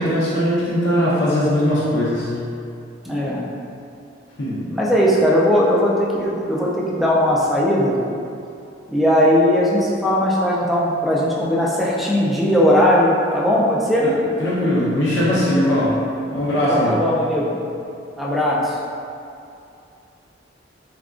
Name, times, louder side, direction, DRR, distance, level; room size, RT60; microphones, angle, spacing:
voice 1, 0.0-2.3 4.4-4.6 14.0-14.1 14.4-15.9 16.3-17.0, equal, 70° left, -9 dB, 0.6 m, -19 dB
voice 2, 3.0-3.4 4.7-8.0 8.9-14.1 16.7-17.5 18.2-18.8, equal, ahead, -6 dB, 0.4 m, -18 dB
3.5 x 2.2 x 2.4 m, 2.6 s
head